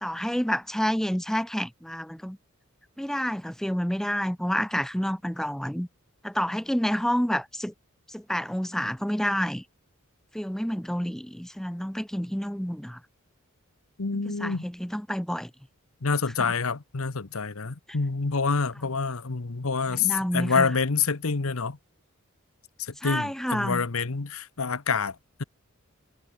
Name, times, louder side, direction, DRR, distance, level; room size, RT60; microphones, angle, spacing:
voice 1, 0.0-2.4 3.0-5.9 6.2-7.7 8.1-9.6 10.3-13.0 14.1-15.5 16.4-16.5 19.9-20.7 23.0-23.8, equal, ahead, 1.0 m, -29 dB
voice 2, 14.0-14.6 16.0-21.8 22.8-25.4, left 5 dB, 75° left, 1.1 m, -27 dB
head